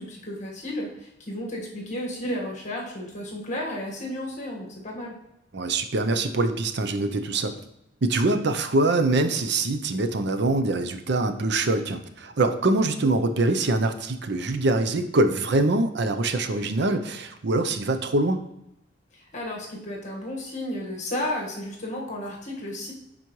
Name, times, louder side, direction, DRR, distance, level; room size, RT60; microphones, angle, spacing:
voice 1, 0.0-5.2 19.1-22.9, left 1 dB, 40° left, -2 dB, 1.6 m, -33 dB
voice 2, 5.5-7.6 8.0-18.4, right 2 dB, 65° right, 8 dB, 0.6 m, -24 dB
10.5 x 4.1 x 3.1 m, 0.84 s
head